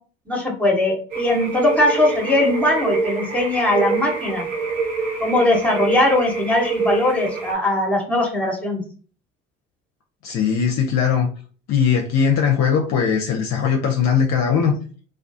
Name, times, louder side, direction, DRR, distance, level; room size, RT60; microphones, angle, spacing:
voice 1, 0.3-4.5 5.2-8.8, left 1 dB, 5° left, 0.9 m, -20 dB
sound 1, 1.1-7.5, right 4 dB, 60° right, 1.0 m, -26 dB
voice 2, 10.2-11.3 11.7-14.8, left 7 dB, 45° left, 0.5 m, -19 dB
2.3 x 2.3 x 2.5 m
hypercardioid pair, 60°, 38 cm